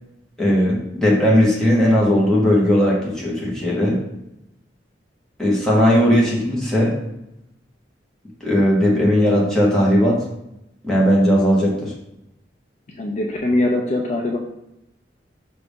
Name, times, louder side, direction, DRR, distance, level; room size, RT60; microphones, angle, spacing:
voice 1, 0.4-4.0 5.4-6.9 8.4-10.2 10.8-11.9, equal, 5° left, -6 dB, 1.3 m, -17 dB
voice 2, 12.9-14.4, left 1 dB, 40° left, 1 dB, 0.5 m, -22 dB
5.7 x 2.6 x 3.6 m, 0.86 s
head